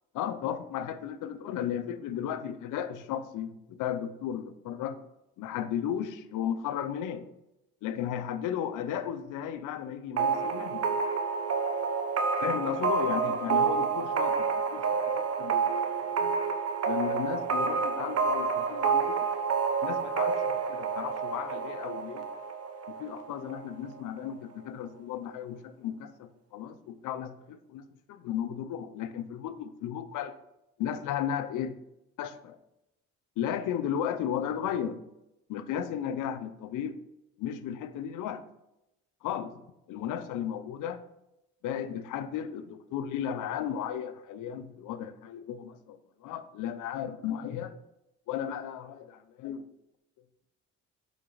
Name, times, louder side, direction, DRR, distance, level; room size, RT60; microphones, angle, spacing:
voice 1, 0.1-5.0 5.4-7.3 7.8-10.9 12.4-15.8 16.0-16.3 16.9-19.5 19.8-22.3 22.9-30.4 30.8-31.8 32.2-32.6 33.4-35.0 35.5-37.0 37.4-38.4 39.2-41.0 41.6-47.8 48.3-49.7, left 9 dB, 85° left, 13 dB, 0.6 m, -35 dB
sound 1, 10.2-23.7, right 5 dB, 55° right, 1.0 m, -29 dB
7.0 x 5.9 x 3.9 m, 0.90 s
cardioid pair, 90°, 30 cm